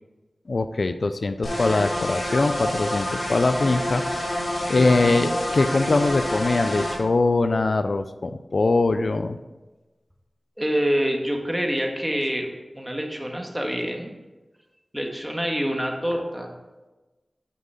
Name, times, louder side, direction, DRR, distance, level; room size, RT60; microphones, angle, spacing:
voice 1, 0.5-4.0 4.7-9.4, left 3 dB, 70° left, 10 dB, 0.4 m, -22 dB
sound 1, 1.4-7.0, left 1 dB, 90° left, 3.2 m, -28 dB
voice 2, 4.8-5.3 10.6-14.1 14.9-16.5, equal, 10° right, 1 dB, 1.7 m, -27 dB
9.9 x 5.6 x 4.9 m, 1.1 s
wide cardioid pair, 55°, 0 cm